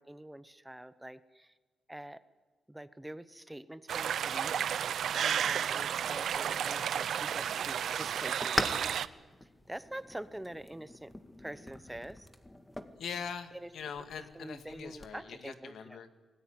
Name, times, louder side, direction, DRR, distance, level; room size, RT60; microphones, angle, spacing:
voice 1, 0.0-1.5 1.9-2.2 2.7-9.0 9.4-11.1 11.4-12.3 13.5-13.7 14.3-16.0, right 1 dB, 5° right, 14 dB, 0.9 m, -46 dB
sound 1, 3.9-9.1, right 9 dB, 80° right, 0.7 m, -32 dB
sound 2, 6.2-15.2, left 1 dB, 10° left, 1.8 m, -42 dB
voice 2, 13.0-16.2, left 7 dB, 80° left, 9 dB, 2.1 m, -42 dB
26.5 x 19.0 x 9.7 m, 1.3 s
cardioid pair, 115°, 0 cm